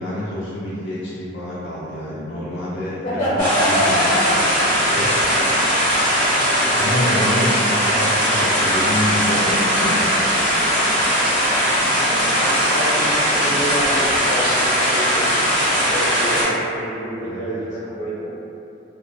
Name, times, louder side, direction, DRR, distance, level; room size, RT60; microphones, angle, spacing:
voice 1, 0.0-5.1 6.7-10.0 17.2-17.6, left 1 dB, 70° left, -9 dB, 0.4 m, -27 dB
voice 2, 3.0-4.4 7.1-7.3 10.4-10.7 12.0-15.3 15.9-18.3, equal, 35° left, -13 dB, 0.7 m, -26 dB
sound 1, 3.4-16.4, equal, 55° right, 1.2 m, -19 dB
sound 2, 5.2-5.9 6.1-6.2 9.4-11.1 12.9-14.4 14.7-14.8, equal, ahead, 0.4 m, -37 dB
2.5 x 2.2 x 2.3 m, 2.7 s
head